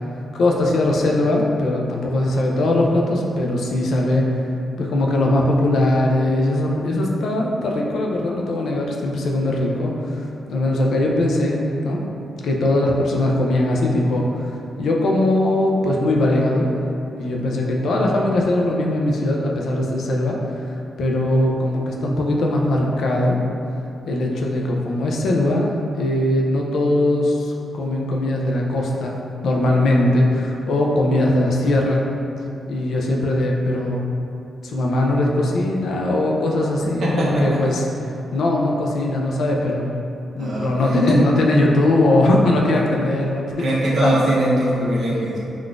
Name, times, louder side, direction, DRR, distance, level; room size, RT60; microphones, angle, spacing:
voice 1, 0.3-4.3 4.8-12.0 12.4-16.8 17.2-23.4 24.1-29.2 29.4-32.0 32.7-34.1 34.6-37.9 38.3-39.8 40.3-43.5 44.0-44.2, left 1 dB, 75° left, -1 dB, 0.4 m, -20 dB
voice 2, 37.0-37.6 40.4-40.7 41.1-41.2 43.6-45.4, right 1 dB, 60° right, -5 dB, 0.6 m, -21 dB
3.6 x 2.4 x 2.4 m, 2.7 s
cardioid pair, 120°, 0 cm